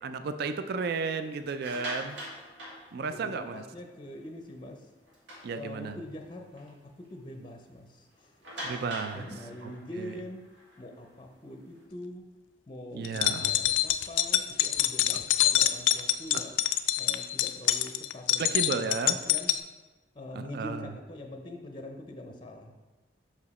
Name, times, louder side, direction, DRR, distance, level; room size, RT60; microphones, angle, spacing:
voice 1, 0.0-2.2 2.9-3.6 5.4-6.0 8.6-9.3 9.6-9.7 10.0-10.1 12.9-13.6 16.3-16.4 18.4-19.2 20.3-20.9, right 4 dB, 60° right, 10 dB, 0.4 m, -33 dB
sound 1, 1.4-3.6 4.0-4.2 4.6-4.7 5.1-6.1 6.6-6.7 7.0-7.1 8.4-11.8, equal, 80° right, 1.6 m, -43 dB
voice 2, 3.1-4.9 5.5-8.4 9.1-10.4 10.8-12.2 12.7-16.5 17.0-19.6 20.1-22.7, left 1 dB, 25° left, 3 dB, 0.5 m, -43 dB
sound 2, 13.0-19.6, left 13 dB, 85° left, 0.3 m, -26 dB
5.6 x 4.9 x 4.1 m, 1.2 s
head